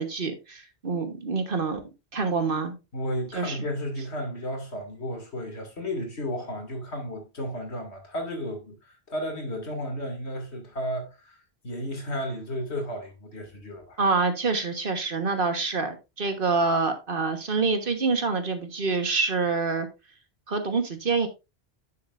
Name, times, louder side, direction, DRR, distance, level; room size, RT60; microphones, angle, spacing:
voice 1, 0.0-1.8 2.1-2.7 3.3-3.6 14.0-19.9 20.5-21.3, right 4 dB, 55° right, 1.5 m, -26 dB
voice 2, 2.9-11.4 11.6-14.0, equal, 85° left, 2.7 m, -33 dB
10.5 x 6.9 x 2.5 m
omnidirectional pair, 1.1 m